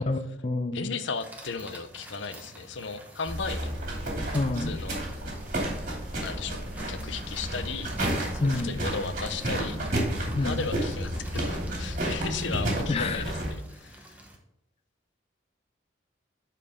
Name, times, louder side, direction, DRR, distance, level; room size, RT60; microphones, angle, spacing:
voice 1, 0.1-0.9 4.3-4.8 8.4-8.7 10.3-10.7 12.9-13.2, left 2 dB, 30° left, 10 dB, 0.4 m, -28 dB
voice 2, 0.7-3.8 4.6-5.0 6.2-6.6 6.9-7.9 8.3-9.8 10.4-14.1, left 5 dB, 80° left, 11 dB, 0.6 m, -35 dB
sound 1, 1.0-14.4, right 1 dB, 10° right, 1.0 m, -49 dB
sound 2, 3.3-13.5, right 1 dB, 45° right, 2.4 m, -31 dB
8.4 x 4.6 x 3.6 m, 0.88 s
head